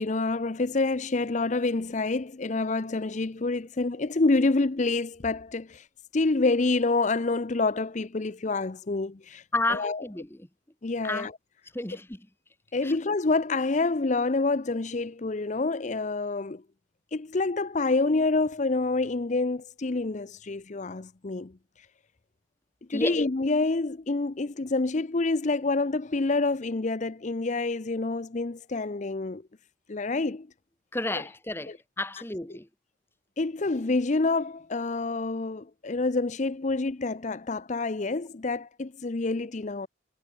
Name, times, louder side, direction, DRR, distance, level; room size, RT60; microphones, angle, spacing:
voice 1, 0.0-5.9 6.1-10.0 10.8-11.4 12.7-16.6 17.1-21.5 21.8-21.9 22.9-29.4 29.9-30.5 31.2-31.3 31.7-31.8 32.5-32.6 33.4-39.9, left 3 dB, 40° left, 0.6 m, -27 dB
voice 2, 9.5-10.3 11.0-11.3 11.7-12.2 22.9-23.2 30.9-32.7, left 2 dB, 10° left, 1.3 m, -31 dB
head